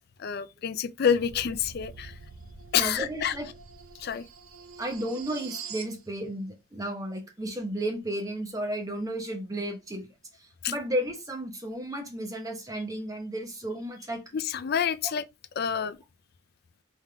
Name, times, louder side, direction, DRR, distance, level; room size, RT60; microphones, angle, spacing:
voice 1, 0.2-2.2 2.7-3.4 4.0-4.3 10.6-10.7 14.3-15.2 15.6-16.0, left 8 dB, 50° left, 0.4 m, -28 dB
sound 1, 1.1-6.0, right 5 dB, 85° right, 0.6 m, -45 dB
voice 2, 2.8-3.5 4.8-10.1 10.4-14.2, right 1 dB, 15° right, 0.8 m, -33 dB
3.6 x 3.5 x 3.3 m
head